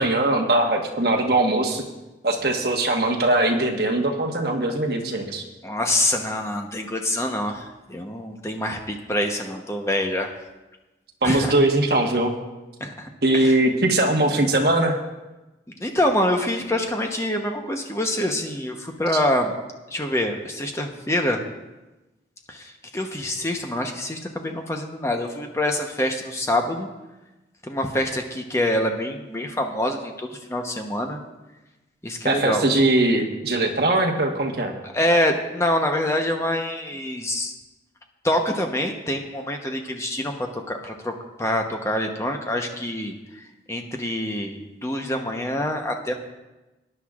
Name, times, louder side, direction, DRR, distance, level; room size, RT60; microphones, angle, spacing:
voice 1, 0.0-1.8 2.2-5.4 11.2-12.3 13.2-15.0 32.2-34.7, right 2 dB, 60° right, 2 dB, 1.3 m, -21 dB
voice 2, 5.6-7.6 7.9-10.3 11.2-11.5 12.8-13.6 15.8-19.5 19.9-21.4 22.5-26.9 27.6-31.2 32.0-32.7 34.9-37.5 38.2-41.1 41.4-43.1 43.7-46.1, left 1 dB, 15° left, 3 dB, 0.9 m, -25 dB
19.0 x 10.0 x 2.4 m, 1.1 s
head